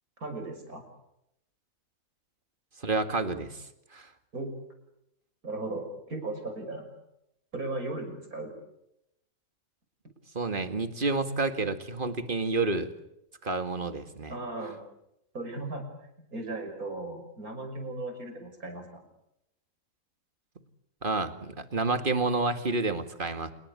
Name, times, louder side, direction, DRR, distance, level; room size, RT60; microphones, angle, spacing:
voice 1, 0.2-0.8 4.3-4.5 5.4-6.9 7.5-8.5 14.3-14.8 15.3-15.8 16.3-19.0, right 2 dB, 65° right, 6 dB, 6.4 m, -36 dB
voice 2, 2.8-3.6 3.9-4.1 10.3-12.9 13.4-14.3 21.0-23.5, right 3 dB, 35° right, 9 dB, 2.2 m, -29 dB
28.0 x 21.0 x 8.5 m, 0.81 s
omnidirectional pair, 1.7 m